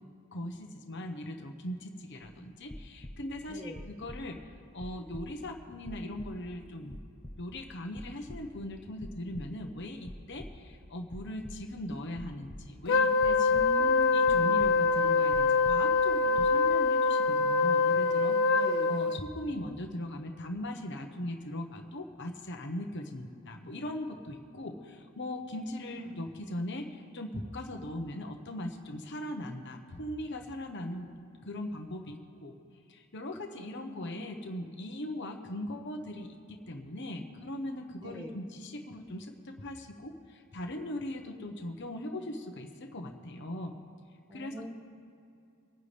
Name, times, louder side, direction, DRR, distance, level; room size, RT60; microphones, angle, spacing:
voice 1, 0.3-4.4 4.7-7.0 7.3-13.9 14.1-18.6 18.9-31.1 31.4-32.6 32.9-43.7 44.3-44.5, left 1 dB, 55° left, 4 dB, 1.1 m, -39 dB
sound 1, 2.3-3.3 3.7-4.5 4.8-6.5 6.9-7.7 8.0-8.7 9.0-9.7 10.0-10.7 11.1-11.9 12.1-12.8 13.2-14.0 14.3-15.0 15.3-16.1 16.3-16.6, left 1 dB, 20° left, 0.9 m, -46 dB
voice 2, 3.5-3.9 13.5-14.3 18.5-19.0 33.7-34.6 38.0-38.4 44.3-44.7, left 1 dB, 20° right, 0 dB, 1.9 m, -42 dB
Wind instrument woodwind instrument, 12.9-19.2, left 4 dB, 80° left, 0.8 m, -25 dB
25.0 x 9.5 x 3.4 m, 2.7 s
head